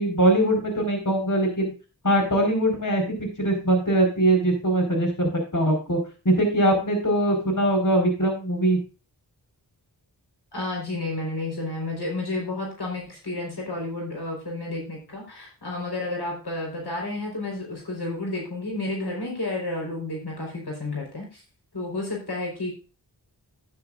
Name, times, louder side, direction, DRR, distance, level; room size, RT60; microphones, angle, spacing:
voice 1, 0.0-1.7 2.0-6.0 6.2-8.8, right 1 dB, 50° left, 3 dB, 4.5 m, -22 dB
voice 2, 10.5-21.4 21.7-22.7, left 2 dB, 70° left, 0 dB, 4.1 m, -31 dB
12.5 x 9.8 x 2.5 m, 0.31 s
wide cardioid pair, 55°, 40 cm